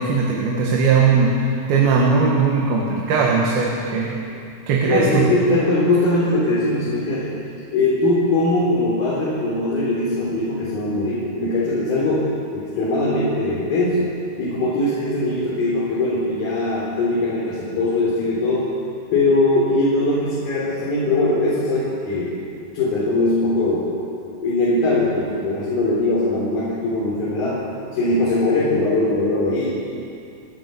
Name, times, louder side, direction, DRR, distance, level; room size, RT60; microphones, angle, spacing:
voice 1, 0.0-4.2 4.7-5.3, right 4 dB, 80° right, -2 dB, 3.7 m, -19 dB
voice 2, 4.9-7.4 7.7-14.1 14.4-18.7 19.1-22.4 22.7-24.0 24.4-27.6 27.9-29.7, left 2 dB, 75° left, -7 dB, 5.6 m, -21 dB
29.5 x 12.5 x 7.1 m, 2.6 s
omnidirectional pair, 4.3 m